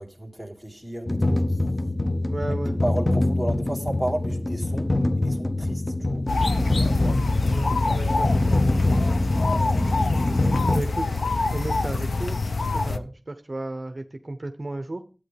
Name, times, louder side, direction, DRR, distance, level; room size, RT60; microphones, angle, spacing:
voice 1, 0.0-2.0 2.8-6.2 12.8-13.1, right 1 dB, 10° left, 2.3 m, -33 dB
sound 1, 1.1-10.8, left 2 dB, 30° left, 0.7 m, -24 dB
voice 2, 2.3-2.8 7.5-8.6 10.7-11.2 11.5-12.4 12.7-15.1, right 2 dB, 35° right, 0.7 m, -34 dB
sound 2, 6.3-13.0, left 3 dB, 80° left, 0.5 m, -25 dB
11.5 x 8.7 x 3.3 m
wide cardioid pair, 65°, 0 cm